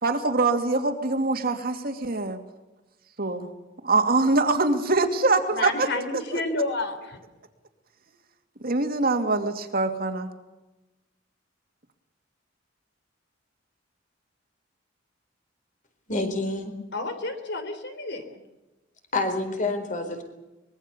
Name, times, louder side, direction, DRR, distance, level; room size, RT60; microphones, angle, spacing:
voice 1, 0.0-2.4 3.2-3.5 3.8-6.4 8.6-10.3, right 3 dB, 50° right, 6 dB, 2.7 m, -24 dB
voice 2, 5.5-7.2 16.9-18.4, left 2 dB, 60° left, 8 dB, 3.7 m, -30 dB
voice 3, 16.1-16.8 19.1-20.2, left 2 dB, 40° left, 7 dB, 4.4 m, -27 dB
24.5 x 22.0 x 7.0 m, 1.1 s
head